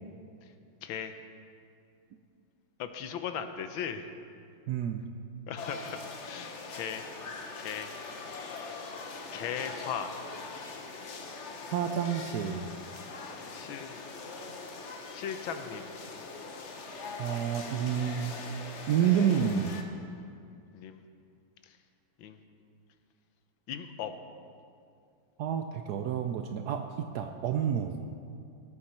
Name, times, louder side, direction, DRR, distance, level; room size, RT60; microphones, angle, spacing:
voice 1, 0.8-1.1 2.8-4.1 5.5-7.0 7.6-7.9 9.3-10.2 13.5-13.9 15.1-16.0 20.7-21.0 21.7-21.8 22.2-22.4 23.7-24.1, left 8 dB, 85° left, 9 dB, 1.5 m, -38 dB
voice 2, 4.7-5.0 11.7-12.7 17.2-18.3 18.9-19.8 25.4-28.0, right 8 dB, 75° right, 6 dB, 0.9 m, -29 dB
sound 1, 5.6-19.8, left 4 dB, 50° left, 0.9 m, -42 dB
17.0 x 8.7 x 4.3 m, 2.4 s
omnidirectional pair, 2.1 m